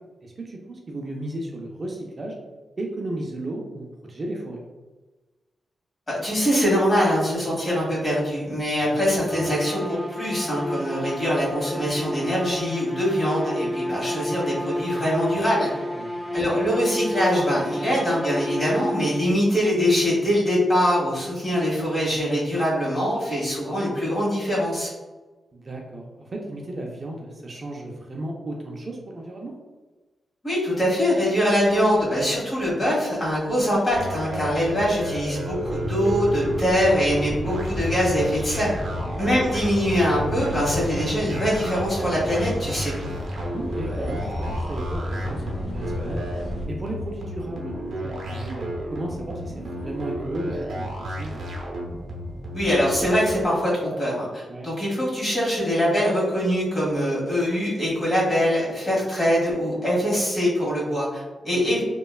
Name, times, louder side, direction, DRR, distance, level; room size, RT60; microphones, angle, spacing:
voice 1, 0.2-2.4 2.8-4.6 8.8-9.0 15.9-16.3 25.5-29.5 39.0-39.3 43.5-46.2 46.7-50.9 51.2-51.4 54.5-54.7 61.5-61.7, right 1 dB, 40° right, 0 dB, 0.4 m, -34 dB
voice 2, 6.1-15.7 16.3-24.9 30.4-38.7 39.1-42.9 52.5-61.8, equal, 30° left, -6 dB, 1.4 m, -23 dB
sound 1, 9.2-19.5, left 1 dB, 15° left, 0.5 m, -30 dB
sound 2, 33.9-53.5, equal, 75° right, 0.6 m, -33 dB
sound 3, 35.5-46.7, left 1 dB, 70° left, 0.6 m, -32 dB
3.1 x 2.2 x 2.3 m, 1.2 s
cardioid pair, 90°, 0 cm